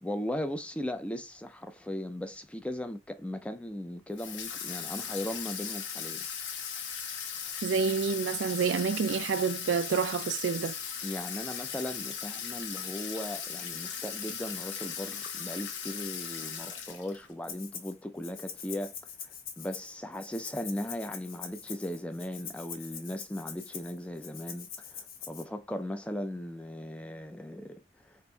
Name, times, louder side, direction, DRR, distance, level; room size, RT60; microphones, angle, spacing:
voice 1, 0.0-6.2 11.0-18.9 19.2-28.2, left 1 dB, 5° left, 0.4 m, -38 dB
Water tap faucet / Sink (filling or washing), 4.2-17.3, left 7 dB, 80° left, 1.0 m, -38 dB
voice 2, 7.6-10.8, right 5 dB, 85° right, 0.4 m, -28 dB
Rattle (instrument), 17.4-17.9 18.2-25.4, left 7 dB, 50° left, 0.9 m, -44 dB
4.3 x 2.5 x 3.3 m
head